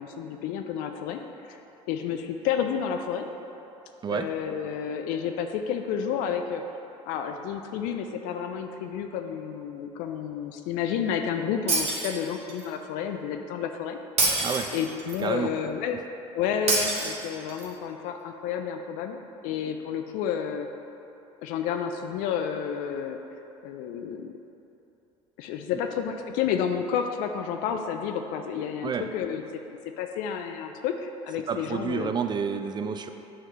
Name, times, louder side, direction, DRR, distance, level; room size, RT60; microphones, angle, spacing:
voice 1, 0.0-1.6 1.9-3.3 4.1-6.6 7.1-14.0 14.7-16.0 16.3-20.7 21.4-23.2 23.6-24.3 25.4-29.6 30.0-32.1, left 8 dB, 75° left, 6 dB, 0.4 m, -30 dB
Shatter, 11.7-12.7 14.2-15.2 16.7-17.7, right 3 dB, 50° right, 1.4 m, -26 dB
voice 2, 14.4-14.7 15.2-15.5 28.8-29.1 31.5-33.1, right 6 dB, 30° right, 8 dB, 0.4 m, -29 dB
9.2 x 3.8 x 3.0 m, 2.9 s
supercardioid pair, 80°, 14 cm